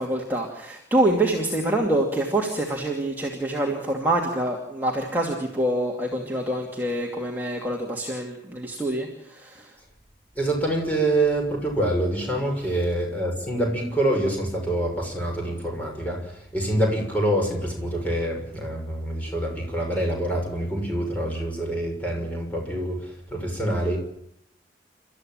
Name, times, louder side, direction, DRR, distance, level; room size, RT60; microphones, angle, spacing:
voice 1, 0.0-9.7, right 1 dB, 10° right, -2 dB, 2.6 m, -26 dB
voice 2, 10.3-24.0, right 1 dB, 10° left, 1 dB, 6.5 m, -26 dB
30.0 x 14.0 x 9.1 m, 0.74 s
head